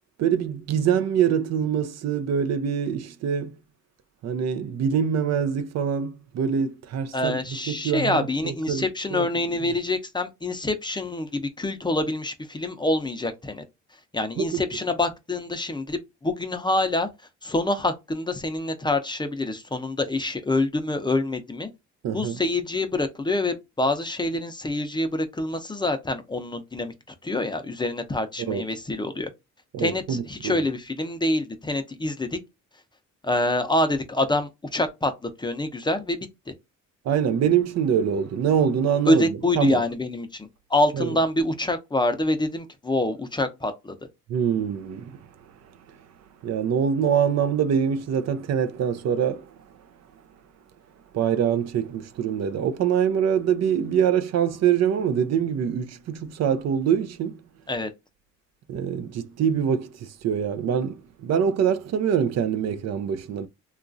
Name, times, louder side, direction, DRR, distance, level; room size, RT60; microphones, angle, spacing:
voice 1, 0.2-3.6 4.2-7.4 7.7-8.8 9.1-9.3 14.4-14.6 22.0-22.4 28.5-28.6 29.7-30.6 37.1-39.3 39.6-39.8 40.9-41.1 44.3-45.2 46.4-49.5 51.1-57.4 58.7-63.5, right 8 dB, 60° right, 0.5 m, -24 dB
voice 2, 7.1-13.6 14.1-17.1 17.4-21.7 22.1-26.9 27.2-29.3 29.8-32.4 33.2-35.1 35.4-36.2 39.1-43.9 57.7-57.9, left 2 dB, 15° left, 0.5 m, -26 dB
2.9 x 2.4 x 2.5 m
cardioid pair, 90°, 30 cm